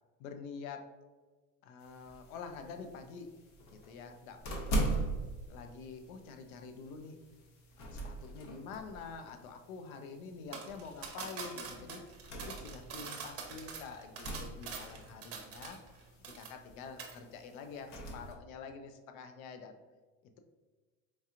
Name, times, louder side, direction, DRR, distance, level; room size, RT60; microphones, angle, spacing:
voice 1, 0.2-0.9 1.6-3.3 3.7-5.0 5.5-7.2 7.8-12.0 12.3-15.8 16.2-19.8, left 5 dB, 90° left, 6 dB, 0.6 m, -47 dB
sound 1, 1.8-18.3, right 1 dB, 45° left, 0.8 m, -42 dB
sound 2, 10.5-16.0 16.2-16.7 17.0-17.2, right 5 dB, 35° right, 0.8 m, -44 dB
4.5 x 2.8 x 2.4 m, 1.3 s
supercardioid pair, 125°, 41 cm